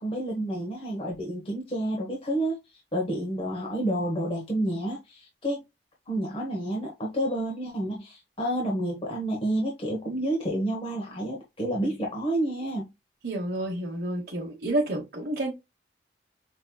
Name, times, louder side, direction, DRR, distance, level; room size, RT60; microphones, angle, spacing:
voice 1, 0.0-2.6 2.9-5.6 6.1-12.9, right 1 dB, 30° left, 0.9 m, -29 dB
voice 2, 13.2-15.5, right 1 dB, 60° right, 1.0 m, -29 dB
5.2 x 2.9 x 2.2 m
head